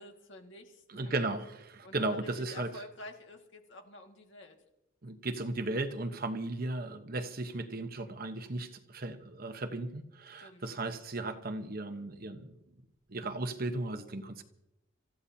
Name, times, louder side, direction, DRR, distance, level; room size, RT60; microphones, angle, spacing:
voice 1, 0.0-1.2 1.8-4.6 10.4-10.6, left 1 dB, 60° left, 3 dB, 2.0 m, -49 dB
voice 2, 0.9-2.7 5.0-12.5 13.1-14.4, right 2 dB, 45° right, 7 dB, 1.1 m, -36 dB
27.5 x 14.5 x 2.9 m, 0.89 s
head